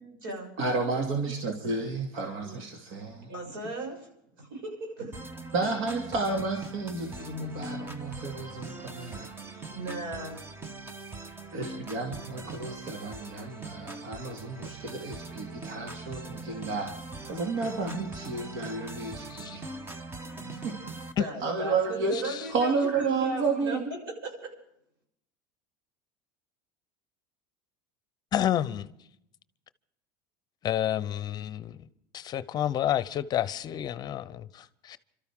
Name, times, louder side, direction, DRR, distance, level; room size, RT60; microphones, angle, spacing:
voice 1, 0.0-0.5 2.4-2.6 3.3-4.0 4.4-5.3 9.5-10.4 21.2-24.5, right 2 dB, 85° right, 6.9 m, -37 dB
voice 2, 0.6-3.3 5.5-9.3 11.5-16.9 17.3-19.7 20.6-20.8 21.4-23.9, right 3 dB, 65° right, 2.7 m, -31 dB
sound 1, 5.1-21.1, right 3 dB, 20° right, 1.2 m, -41 dB
voice 3, 28.3-28.9 30.6-31.9 32.1-35.0, left 11 dB, 40° left, 0.7 m, -30 dB
29.0 x 13.0 x 3.8 m
supercardioid pair, 120°, 11 cm